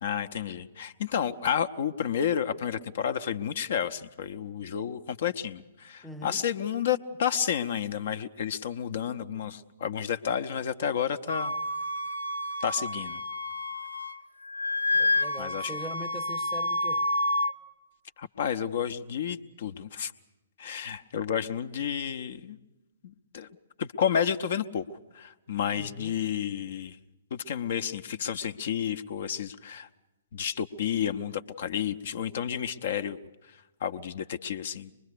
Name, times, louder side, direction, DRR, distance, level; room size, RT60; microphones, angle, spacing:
voice 1, 0.0-11.5 12.6-13.2 15.4-15.7 18.2-20.1 20.6-22.6 23.0-23.5 23.8-24.8 25.1-27.0 27.3-29.9 30.3-33.2 33.8-34.9, left 8 dB, 50° left, 0.8 m, -31 dB
voice 2, 6.0-6.5 14.9-17.1 25.7-26.2, right 1 dB, ahead, 0.7 m, -42 dB
Wind instrument woodwind instrument, 11.3-14.2 14.5-17.5, left 1 dB, 80° left, 0.9 m, -29 dB
24.0 x 21.5 x 6.7 m
figure-of-eight pair, 120°, 0 cm